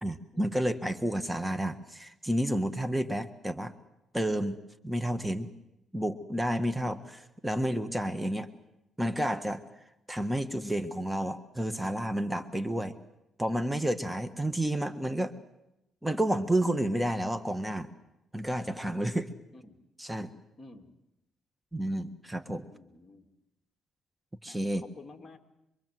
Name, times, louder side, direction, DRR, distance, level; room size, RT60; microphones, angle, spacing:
voice 1, 0.0-3.7 4.1-5.5 5.9-8.5 9.0-9.6 10.1-13.0 13.4-15.3 16.0-17.9 18.3-19.3 20.0-20.3 21.7-22.7 24.4-24.8, right 1 dB, 10° right, 10 dB, 1.5 m, -30 dB
voice 2, 20.6-20.9 22.7-23.3 24.5-25.4, left 2 dB, 30° left, 6 dB, 3.1 m, -51 dB
25.5 x 23.5 x 7.8 m, 0.89 s
cardioid pair, 90°, 0 cm